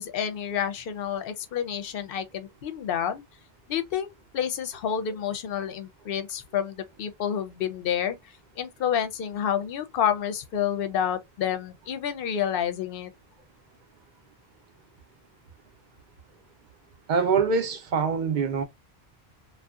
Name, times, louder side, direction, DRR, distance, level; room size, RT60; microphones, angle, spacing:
voice 1, 0.0-3.2 3.7-8.2 8.6-13.1, left 9 dB, 65° left, 0.7 m, -29 dB
voice 2, 17.1-18.6, right 5 dB, 55° right, 0.7 m, -24 dB
2.6 x 2.3 x 2.3 m
omnidirectional pair, 1.1 m